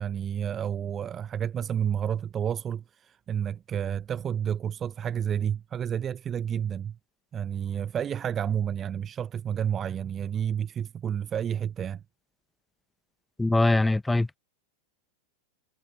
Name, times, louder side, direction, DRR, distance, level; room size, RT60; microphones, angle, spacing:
voice 1, 0.0-7.0 7.3-12.0, right 9 dB, 25° right, 0.7 m, -30 dB
voice 2, 13.4-14.4, left 2 dB, 5° left, 1.1 m, -22 dB
figure-of-eight pair, 90°, 0 cm